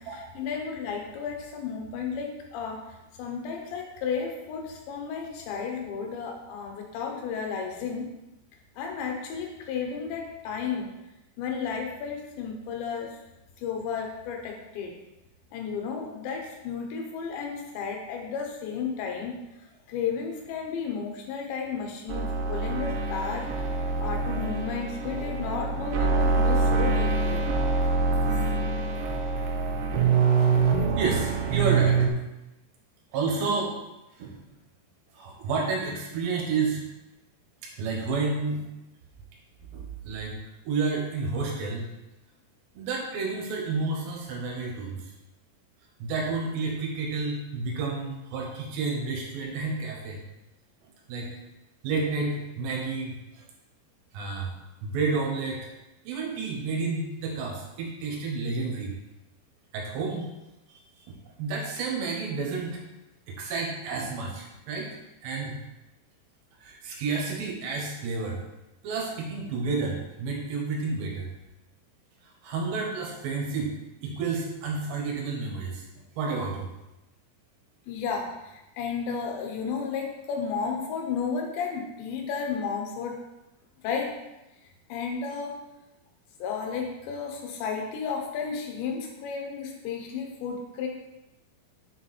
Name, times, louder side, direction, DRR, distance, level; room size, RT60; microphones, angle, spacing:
voice 1, 0.0-2.8 3.2-8.1 8.8-10.9 11.4-13.2 13.6-14.9 15.5-19.4 19.9-23.6 24.0-27.4 77.9-83.2 83.8-84.1 84.9-85.6 86.4-90.9, left 6 dB, 80° left, 1 dB, 3.2 m, -33 dB
sound 1, 22.1-32.1, right 4 dB, 90° right, 3.1 m, -25 dB
voice 2, 31.0-32.0 33.1-33.7 34.2-34.4 35.1-36.8 37.8-38.6 39.7-40.3 40.6-41.9 42.7-45.0 46.0-50.2 51.1-51.3 51.8-53.4 54.1-54.6 54.8-55.7 56.0-59.0 59.7-60.3 60.7-60.8 61.1-62.8 63.3-64.9 65.2-65.6 66.6-68.4 68.8-71.3 72.2-73.8 74.0-75.9 76.2-76.7, right 4 dB, 75° right, 0 dB, 3.2 m, -30 dB
7.1 x 4.6 x 4.1 m, 0.97 s
omnidirectional pair, 5.3 m